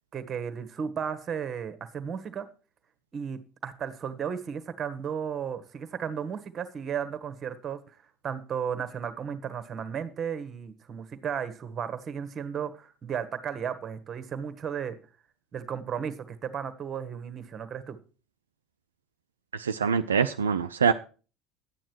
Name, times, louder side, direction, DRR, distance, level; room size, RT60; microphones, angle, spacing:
voice 1, 0.1-2.4 3.1-7.8 8.2-15.0 15.5-18.0, right 7 dB, 35° right, 12 dB, 1.3 m, -34 dB
voice 2, 19.5-20.9, right 6 dB, 75° right, 8 dB, 0.4 m, -24 dB
11.5 x 9.1 x 4.6 m, 0.36 s
figure-of-eight pair, 65°, 0 cm